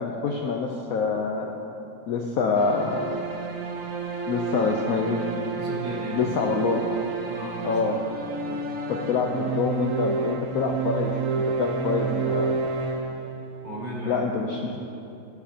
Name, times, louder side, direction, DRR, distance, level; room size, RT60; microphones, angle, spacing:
voice 1, 0.0-1.5 2.1-3.1 4.3-5.2 6.1-6.8 7.6-8.0 8.9-12.6 14.0-14.6, left 4 dB, 80° left, 1 dB, 0.8 m, -26 dB
sound 1, 2.6-13.7, right 4 dB, 65° right, 0.8 m, -30 dB
voice 2, 5.6-6.2 7.2-8.1 8.4-8.6 8.9-9.0 13.6-15.0, right 1 dB, 25° right, -5 dB, 1.1 m, -36 dB
11.5 x 8.3 x 2.8 m, 2.8 s
omnidirectional pair, 2.0 m